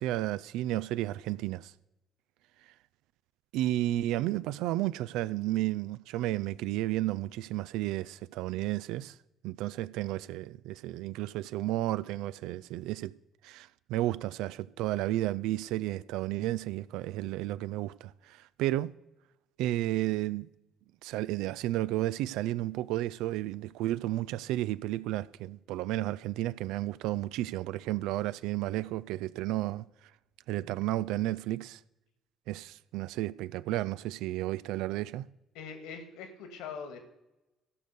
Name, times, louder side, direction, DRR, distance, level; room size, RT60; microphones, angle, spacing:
voice 1, 0.0-1.7 3.5-9.2 9.4-13.1 13.4-18.9 19.6-20.5 21.0-29.9 30.5-31.8 32.5-35.2, right 15 dB, 65° right, 0.4 m, -32 dB
voice 2, 35.5-37.0, left 6 dB, 65° left, 2.1 m, -42 dB
15.5 x 6.5 x 6.7 m
figure-of-eight pair, 45°, 0 cm